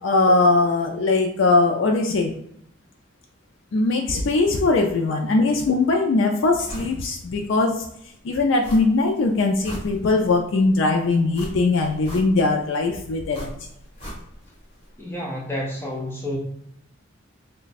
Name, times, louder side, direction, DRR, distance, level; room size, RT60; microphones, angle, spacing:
voice 1, 0.0-2.3 3.7-7.9 8.2-13.5, left 3 dB, 70° left, 2 dB, 0.4 m, -20 dB
sound 1, 6.7-7.0 7.4-7.5 8.6-9.1 9.4-10.4 11.3-12.6 13.3-14.6 14.8-14.9, equal, 30° left, 1.3 m, -37 dB
voice 2, 15.0-16.4, left 1 dB, 10° left, -2 dB, 0.5 m, -30 dB
3.1 x 2.2 x 4.0 m, 0.73 s
head